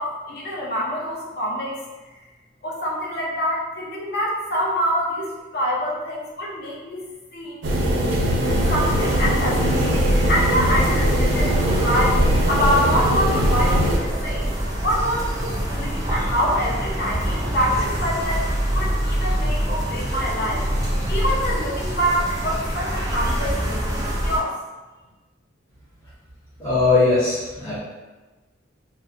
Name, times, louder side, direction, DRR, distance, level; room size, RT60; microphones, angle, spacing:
voice 1, 0.0-1.8 2.6-7.6 8.7-14.5 14.8-24.6, equal, 55° left, -4 dB, 0.5 m, -26 dB
sound 1, 7.6-14.0, equal, 75° right, 0.5 m, -21 dB
sound 2, 8.4-24.4, equal, 20° right, 0.4 m, -25 dB
voice 2, 26.6-27.8, left 3 dB, 20° left, -12 dB, 0.7 m, -19 dB
2.6 x 2.0 x 2.5 m, 1.2 s
head